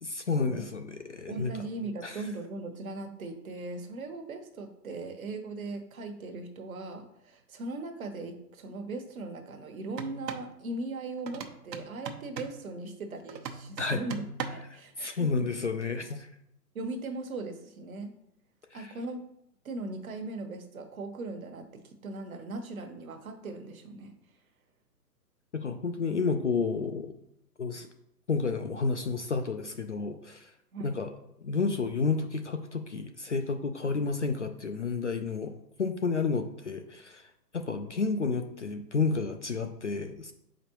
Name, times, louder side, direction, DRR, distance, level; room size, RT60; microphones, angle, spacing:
voice 1, 0.0-1.5 2.0-2.2 13.8-14.0 15.0-16.3 18.7-18.9 25.5-27.1 27.6-27.9 28.3-30.5 30.8-31.1 31.4-35.5 35.8-37.2 37.5-40.3, left 4 dB, 50° left, 6 dB, 0.5 m, -31 dB
voice 2, 1.3-15.5 16.7-18.1 18.7-19.2 19.6-24.1 30.7-30.9, right 2 dB, 55° right, 6 dB, 1.1 m, -39 dB
sound 1, 9.9-10.5 11.3-12.6 13.3-14.7, right 6 dB, 80° right, 1.0 m, -39 dB
7.0 x 5.1 x 2.9 m, 0.78 s
hypercardioid pair, 175°, 49 cm